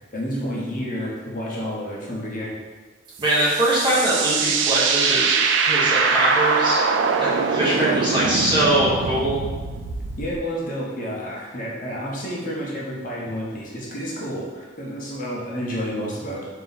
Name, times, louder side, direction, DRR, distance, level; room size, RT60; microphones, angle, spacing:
voice 1, 0.0-2.5 7.6-8.4 10.2-16.4, equal, 50° left, -4 dB, 0.9 m, -30 dB
voice 2, 3.2-5.3 5.7-6.8 7.2-9.4, right 1 dB, 25° right, -8 dB, 1.2 m, -22 dB
sound 1, 3.2-10.4, right 5 dB, 80° right, 0.3 m, -23 dB
3.9 x 2.8 x 4.0 m, 1.3 s
head